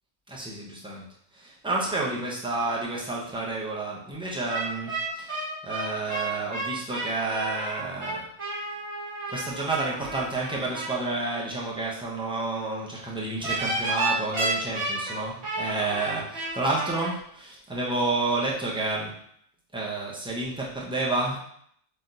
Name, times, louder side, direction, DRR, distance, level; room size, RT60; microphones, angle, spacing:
voice 1, 0.3-1.0 1.3-8.3 9.3-19.1 19.7-21.4, right 2 dB, 5° right, -5 dB, 0.8 m, -30 dB
sound 1, 4.5-11.0 13.4-17.1, right 2 dB, 60° right, 2.1 m, -31 dB
4.0 x 3.0 x 3.9 m, 0.67 s
omnidirectional pair, 1.2 m